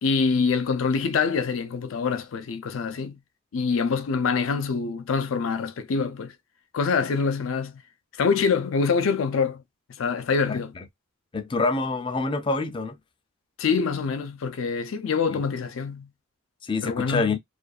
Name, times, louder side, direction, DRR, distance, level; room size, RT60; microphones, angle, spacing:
voice 1, 0.0-3.2 3.5-6.4 6.7-7.8 8.2-9.6 9.9-10.7 13.6-16.1 16.8-17.4, left 5 dB, 85° left, 0.4 m, -25 dB
voice 2, 11.3-13.0 15.3-15.4 16.6-17.4, left 3 dB, 25° left, 0.4 m, -26 dB
2.5 x 2.3 x 2.3 m
head